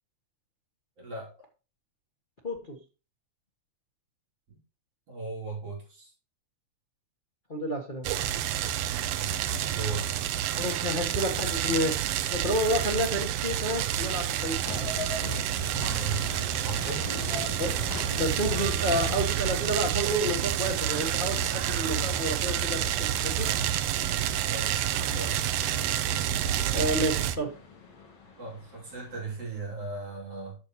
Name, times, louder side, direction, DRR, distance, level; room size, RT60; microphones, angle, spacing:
voice 1, 1.0-1.3 4.5-4.6 5.1-6.1 9.1-10.4 15.6-16.3 16.6-17.2 24.4-25.5 28.4-30.6, right 4 dB, 55° right, -3 dB, 4.1 m, -38 dB
voice 2, 2.4-2.8 7.5-8.1 10.6-14.6 17.6-17.7 18.1-23.5 26.7-27.5, equal, 75° left, 0 dB, 0.4 m, -30 dB
sound 1, 8.0-27.4, right 10 dB, 75° right, 1.6 m, -29 dB
sound 2, 14.6-29.1, left 3 dB, 55° left, 3.3 m, -43 dB
10.5 x 7.2 x 3.1 m, 0.32 s
omnidirectional pair, 3.4 m